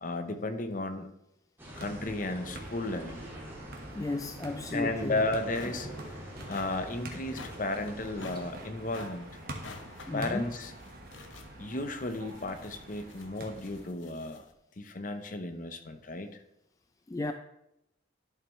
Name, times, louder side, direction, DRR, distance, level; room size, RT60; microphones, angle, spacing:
voice 1, 0.0-1.1 1.8-3.2 4.7-5.9 6.5-9.3 10.1-10.7 11.6-14.4 14.8-16.4, left 2 dB, 45° left, 9 dB, 0.8 m, -34 dB
sound 1, 1.6-8.5, equal, 10° right, 2.2 m, -46 dB
sound 2, 1.7-13.9, right 1 dB, 55° right, 1.4 m, -46 dB
voice 2, 3.9-5.3 5.7-5.8 10.1-10.5 17.1-17.3, left 2 dB, 20° left, 7 dB, 0.3 m, -34 dB
sound 3, 5.5-14.5, left 4 dB, 85° left, 0.9 m, -51 dB
11.0 x 7.0 x 3.1 m, 0.82 s
head